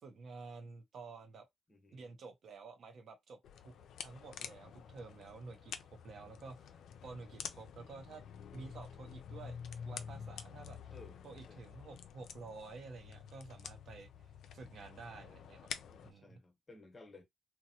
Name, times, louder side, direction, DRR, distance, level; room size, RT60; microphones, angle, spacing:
voice 1, 0.0-1.5 1.9-3.7 4.0-5.7 6.0-6.7 7.0-8.2 8.5-9.6 9.8-10.9 11.2-14.1 14.5-15.7 16.0-16.4, right 4 dB, 65° right, 0.8 m, -51 dB
voice 2, 1.7-2.2 10.0-10.1 10.9-11.2 11.5-11.7 15.9-17.2, left 2 dB, 30° left, 0.9 m, -57 dB
sound 1, 3.4-16.1, left 7 dB, 75° left, 0.4 m, -49 dB
2.8 x 2.1 x 2.7 m
cardioid pair, 90°, 0 cm